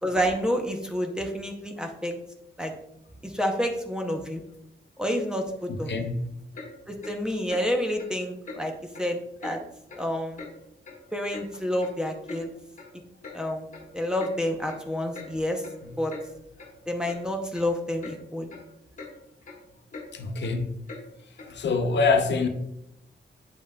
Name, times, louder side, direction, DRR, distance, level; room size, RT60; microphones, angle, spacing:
voice 1, 0.0-2.1 2.6-2.7 3.2-4.4 5.0-6.1 6.9-8.7 9.0-9.6 9.9-10.4 11.1-12.5 13.3-13.7 13.9-15.6 16.0-16.1 16.9-18.5, equal, 5° right, 0.6 m, -29 dB
voice 2, 5.9-6.3 20.1-20.8 21.5-22.5, left 4 dB, 80° left, 0.7 m, -25 dB
Clock, 6.5-6.7 7.0-7.2 7.5-7.7 8.0-8.1 8.5-8.6 8.9-9.1 9.4-9.6 9.9-10.1 10.4-10.5 10.8-11.5 11.8-11.9 12.3-12.4 12.8-12.9 13.2-13.4 13.7-13.9 14.2-14.3 14.7-14.8 15.1-15.3 15.6-15.8 16.1-16.3 16.6-16.7 17.1-17.2 17.5-17.7 18.0-18.2 18.5-18.6 19.0-19.1 19.4-19.6 19.9-20.1 20.4-20.5 20.9-21.0 21.4-21.5, left 3 dB, 45° left, 1.2 m, -41 dB
8.0 x 5.3 x 2.2 m
wide cardioid pair, 165°, 18 cm